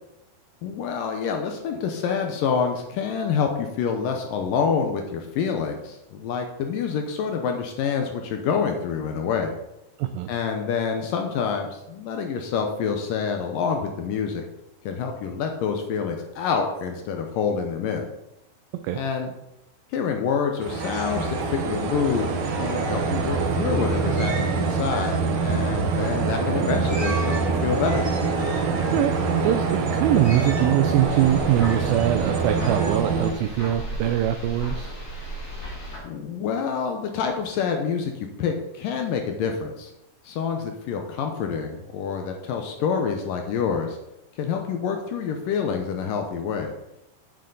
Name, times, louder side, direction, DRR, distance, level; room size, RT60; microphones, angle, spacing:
voice 1, 0.6-9.5 10.3-14.4 14.9-18.1 18.9-19.3 19.9-28.1 36.0-39.9 40.2-44.0 44.4-46.7, left 6 dB, 75° left, 4 dB, 2.1 m, -27 dB
voice 2, 10.0-10.3 18.8-19.0 28.9-29.6 30.0-34.9, right 11 dB, 85° right, 8 dB, 2.1 m, -22 dB
sound 1, 20.6-33.3, right 4 dB, 70° right, 2.2 m, -25 dB
sound 2, 20.8-33.8, right 2 dB, 40° right, 1.6 m, -39 dB
sound 3, 31.0-36.0, equal, 35° left, 1.5 m, -35 dB
10.0 x 7.7 x 3.9 m, 0.88 s
omnidirectional pair, 4.7 m